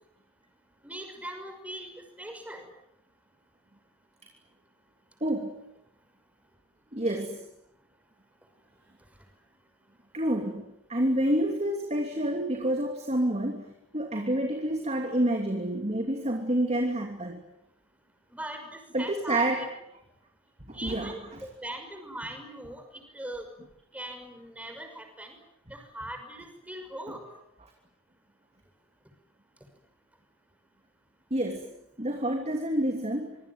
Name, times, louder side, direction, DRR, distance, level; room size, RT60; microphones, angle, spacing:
voice 1, 0.8-1.9 2.2-2.6 18.3-19.7 20.7-23.4 23.9-25.3 25.7-27.2, right 1 dB, 5° right, 5 dB, 5.9 m, -40 dB
voice 2, 5.2-5.6 6.9-7.5 10.1-10.6 10.9-17.4 18.9-19.6 20.6-21.4 31.3-31.7 32.0-33.4, right 1 dB, 30° right, 4 dB, 3.0 m, -28 dB
26.0 x 24.0 x 9.5 m, 0.80 s
head